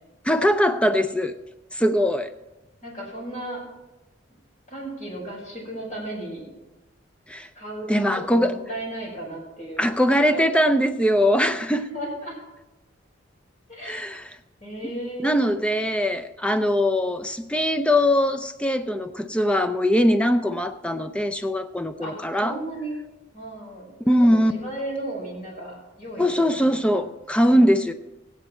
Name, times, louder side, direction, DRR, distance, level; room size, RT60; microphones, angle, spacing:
voice 1, 0.2-1.4 1.7-2.3 7.3-7.5 7.9-8.6 9.8-11.9 13.8-14.3 15.2-22.6 24.1-24.5 26.2-27.9, equal, 5° left, 9 dB, 0.5 m, -21 dB
voice 2, 2.8-3.6 4.7-6.5 7.5-9.9 10.3-10.5 11.9-12.4 13.7-14.1 14.6-15.6 22.0-23.0 23.3-26.2 26.6-27.0 27.4-27.6, right 1 dB, 35° left, -3 dB, 5.2 m, -35 dB
16.0 x 9.4 x 4.4 m, 1.0 s
head